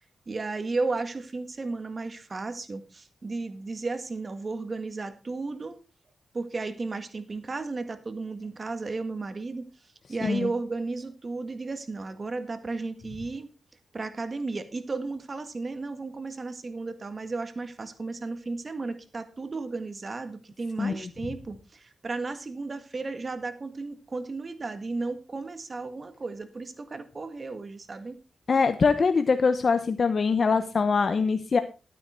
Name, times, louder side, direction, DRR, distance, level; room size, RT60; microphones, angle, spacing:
voice 1, 0.3-5.8 6.3-9.7 10.1-13.5 13.9-28.2, right 3 dB, 40° right, 10 dB, 1.8 m, -34 dB
voice 2, 28.5-31.6, left 5 dB, 55° left, 9 dB, 0.9 m, -23 dB
12.0 x 9.5 x 4.5 m, 0.31 s
cardioid pair, 80°, 0 cm